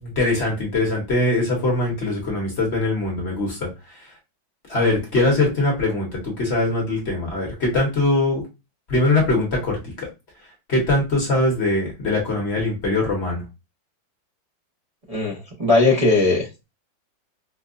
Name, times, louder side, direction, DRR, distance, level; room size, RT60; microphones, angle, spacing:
voice 1, 0.0-4.1 4.7-8.4 8.9-10.1 10.7-13.4, left 2 dB, 45° left, -2 dB, 0.9 m, -22 dB
voice 2, 15.6-16.7, left 3 dB, 55° right, -5 dB, 0.4 m, -18 dB
4.5 x 2.1 x 2.4 m, 0.26 s
omnidirectional pair, 2.1 m